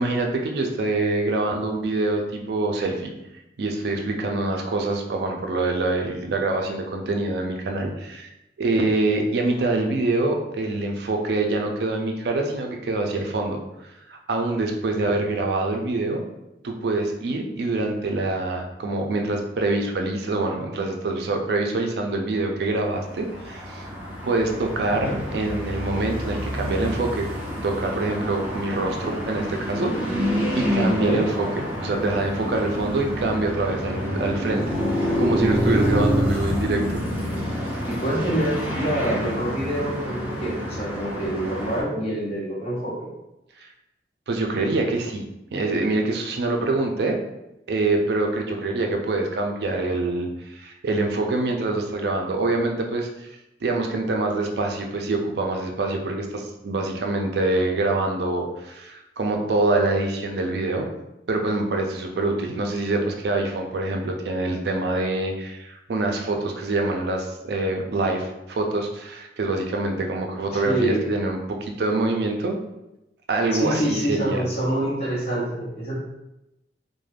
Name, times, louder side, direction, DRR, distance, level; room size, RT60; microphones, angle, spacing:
voice 1, 0.0-3.1 3.6-8.3 8.6-13.6 14.1-16.2 16.6-23.9 24.2-27.3 27.6-31.5 31.8-34.6 35.0-37.0 43.6-43.7 44.3-45.2 45.5-47.2 47.7-53.3 53.6-60.9 61.3-72.6 73.3-74.4, right 2 dB, 60° right, 2 dB, 0.4 m, -25 dB
sound 1, 23.0-41.8, equal, 10° right, 0.7 m, -27 dB
voice 2, 30.8-31.2 37.9-43.1 70.5-71.1 73.5-75.9, right 1 dB, 35° left, -6 dB, 0.9 m, -26 dB
2.4 x 2.1 x 3.3 m, 0.92 s
head